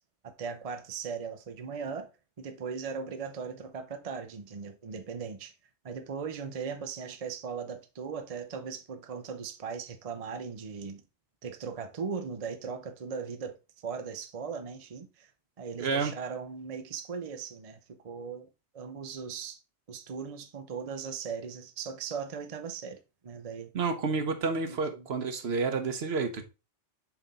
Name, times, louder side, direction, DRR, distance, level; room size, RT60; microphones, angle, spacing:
voice 1, 0.2-2.1 2.4-5.5 5.8-11.0 11.4-15.3 15.6-18.5 18.7-19.6 19.9-23.7 24.7-25.1, right 6 dB, 40° right, 0.7 m, -38 dB
voice 2, 15.8-16.1 23.7-26.4, right 4 dB, 60° right, 1.1 m, -30 dB
7.0 x 3.6 x 3.9 m
omnidirectional pair, 1.2 m